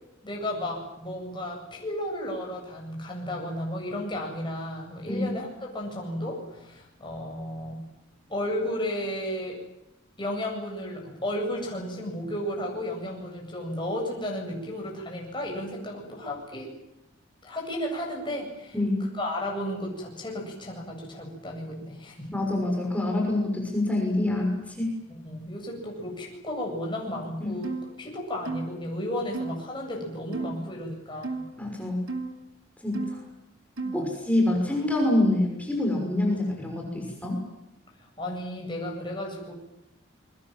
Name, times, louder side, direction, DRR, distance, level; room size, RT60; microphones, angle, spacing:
voice 1, 0.2-7.8 8.3-9.6 10.2-16.7 17.4-18.8 19.2-22.4 25.2-31.4 33.8-34.1 38.0-39.5, left 1 dB, 25° left, -1 dB, 8.0 m, -33 dB
voice 2, 18.7-19.1 22.3-25.0 27.4-27.6 31.6-32.0 32.8-33.2 33.9-37.4, left 1 dB, 5° left, 1 dB, 6.0 m, -26 dB
sound 1, 27.6-27.9 28.5-28.7 29.3-29.6 30.3-30.6 31.2-31.5 32.1-32.3 32.9-33.2 33.8-34.1, right 3 dB, 90° right, 2.9 m, -33 dB
29.0 x 23.5 x 7.6 m, 0.88 s
head